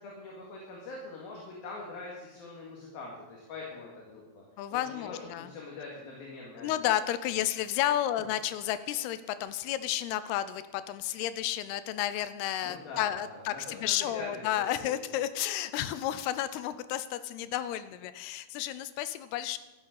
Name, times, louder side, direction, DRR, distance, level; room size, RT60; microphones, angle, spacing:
voice 1, 0.0-4.4 4.7-6.7 12.6-15.0, left 3 dB, 65° left, -3 dB, 3.7 m, -43 dB
voice 2, 4.6-5.5 6.6-19.6, left 12 dB, 80° left, 14 dB, 2.6 m, -32 dB
14.0 x 8.4 x 6.5 m, 1.2 s
omnidirectional pair, 4.7 m